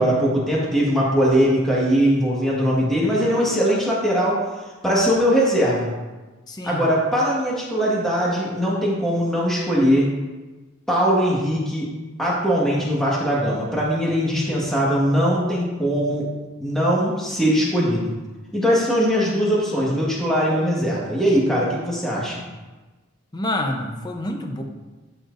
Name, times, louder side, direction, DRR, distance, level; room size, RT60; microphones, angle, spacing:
voice 1, 0.0-4.4 4.8-5.9 6.6-10.1 10.9-11.9 12.2-16.3 16.6-18.1 18.5-22.4, equal, ahead, -6 dB, 1.5 m, -20 dB
voice 2, 6.5-6.9 23.3-24.6, left 1 dB, 20° left, 3 dB, 0.7 m, -28 dB
13.0 x 4.4 x 2.6 m, 1.2 s
head